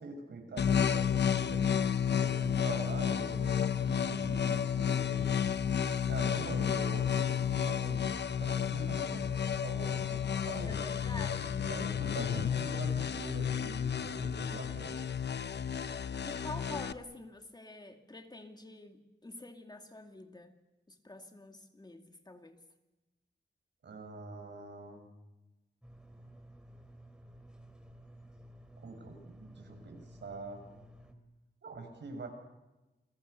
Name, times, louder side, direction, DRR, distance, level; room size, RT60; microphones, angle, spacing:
voice 1, 0.0-5.4 6.1-8.1 8.4-10.7 11.6-15.0 23.8-25.0 28.8-30.7 31.6-32.3, right 3 dB, 75° right, 4 dB, 7.3 m, -44 dB
sound 1, 0.6-16.9, left 8 dB, 70° left, 0.9 m, -31 dB
voice 2, 10.7-11.7 15.9-20.5 20.9-22.6, left 2 dB, 20° left, 5 dB, 2.4 m, -47 dB
sound 2, 25.8-31.1, right 1 dB, 5° right, 3.5 m, -54 dB
30.0 x 22.5 x 7.0 m, 1.0 s
wide cardioid pair, 135°, 18 cm